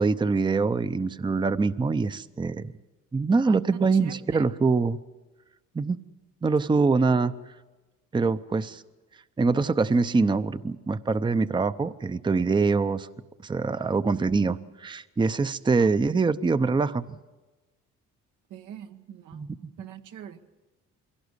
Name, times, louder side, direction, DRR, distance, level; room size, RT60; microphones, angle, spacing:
voice 1, 0.0-2.7 3.1-5.0 5.7-6.0 6.4-7.3 8.1-8.8 9.4-13.1 13.4-17.0 19.3-19.5, right 4 dB, 15° right, 13 dB, 0.6 m, -24 dB
voice 2, 18.5-19.5 19.8-20.6, right 9 dB, 85° right, 6 dB, 1.3 m, -43 dB
22.0 x 17.0 x 8.2 m, 1.2 s
cardioid pair, 90°, 30 cm